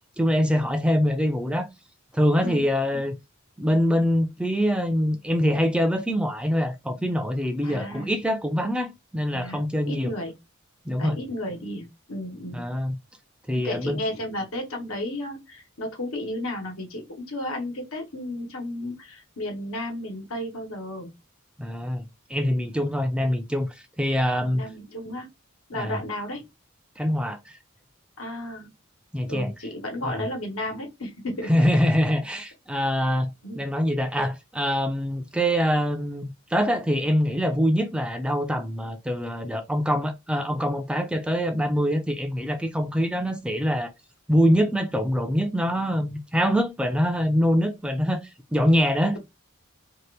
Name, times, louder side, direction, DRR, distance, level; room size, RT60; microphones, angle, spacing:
voice 1, 0.2-1.7 2.1-3.2 3.6-10.1 10.9-11.2 12.5-13.0 13.5-14.0 21.6-23.7 24.0-24.6 25.7-26.0 27.0-27.6 29.1-29.5 30.0-30.2 31.5-43.9 44.3-48.2 48.5-49.2, equal, 5° right, 0.4 m, -24 dB
voice 2, 7.6-8.2 9.3-9.6 9.9-10.3 11.0-12.6 13.6-21.1 24.5-25.3 25.7-26.4 28.2-28.7 29.3-31.6 33.4-33.6, left 1 dB, 85° left, 1.2 m, -33 dB
2.7 x 2.5 x 3.2 m
head